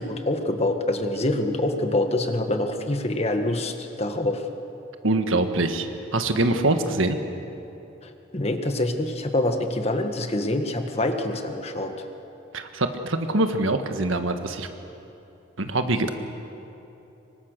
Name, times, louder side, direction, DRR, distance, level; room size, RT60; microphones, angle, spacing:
voice 1, 0.0-4.5 8.0-12.1, left 1 dB, 30° left, 5 dB, 1.6 m, -26 dB
voice 2, 5.0-5.9 6.1-7.2 12.5-14.7 15.6-16.1, right 2 dB, 75° right, 7 dB, 1.6 m, -24 dB
25.5 x 24.0 x 6.8 m, 3.0 s
head